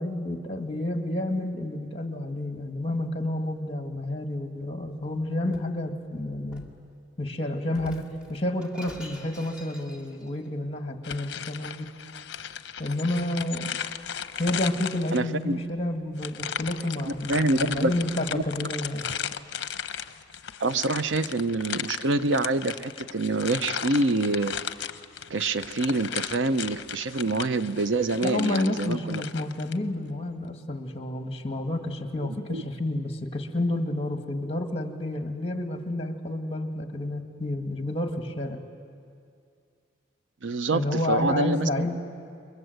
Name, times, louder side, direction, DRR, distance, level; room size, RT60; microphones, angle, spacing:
voice 1, 0.0-6.7 7.2-11.9 12.8-13.7 14.4-19.1 28.2-38.6 40.7-42.0, left 1 dB, 30° left, 5 dB, 1.8 m, -30 dB
Shatter, 4.9-5.8 6.5-6.8 7.7-10.3, left 1 dB, 5° right, 2.0 m, -47 dB
sound 1, 11.0-15.4 16.2-29.8, left 8 dB, 60° left, 0.7 m, -36 dB
voice 2, 15.1-15.6 17.1-17.9 18.3-18.7 20.6-24.6 25.3-29.2 32.2-32.6 40.4-41.7, right 2 dB, 80° right, 12 dB, 0.7 m, -26 dB
29.0 x 22.5 x 7.9 m, 2.4 s
head